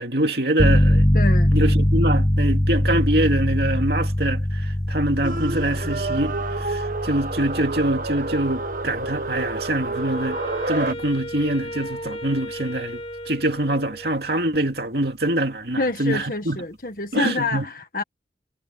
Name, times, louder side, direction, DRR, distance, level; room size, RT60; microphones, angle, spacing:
voice 1, 0.0-1.1 1.5-10.4 10.7-16.6 17.1-17.6, right 1 dB, 65° right, 2.6 m, -24 dB
sound 1, 0.6-11.1, equal, 15° left, 1.3 m, -22 dB
voice 2, 1.1-1.6 15.8-18.0, left 3 dB, 50° left, 1.7 m, -27 dB
sound 2, 5.2-10.9, right 2 dB, 50° right, 1.4 m, -29 dB
Wind instrument woodwind instrument, 9.9-14.3, equal, 30° left, 1.9 m, -35 dB
head